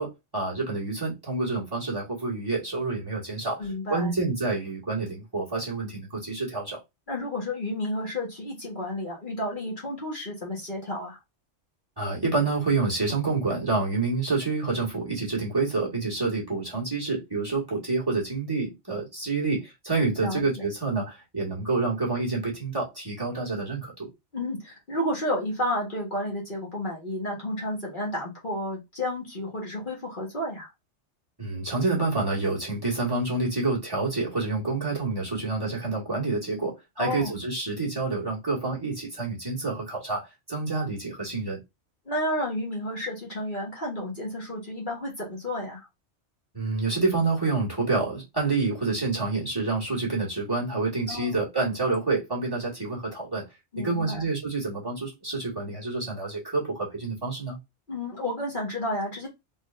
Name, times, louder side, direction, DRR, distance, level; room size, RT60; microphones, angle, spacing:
voice 1, 0.0-6.8 12.0-24.1 31.4-41.6 46.5-53.4 53.8-57.6, right 3 dB, 20° right, 1.7 m, -28 dB
voice 2, 3.6-4.1 7.1-11.2 20.2-20.7 24.3-30.7 37.0-37.3 42.0-45.9 51.1-51.4 53.7-54.3 57.9-59.3, left 1 dB, 45° left, 1.6 m, -31 dB
4.0 x 3.6 x 2.5 m
omnidirectional pair, 1.2 m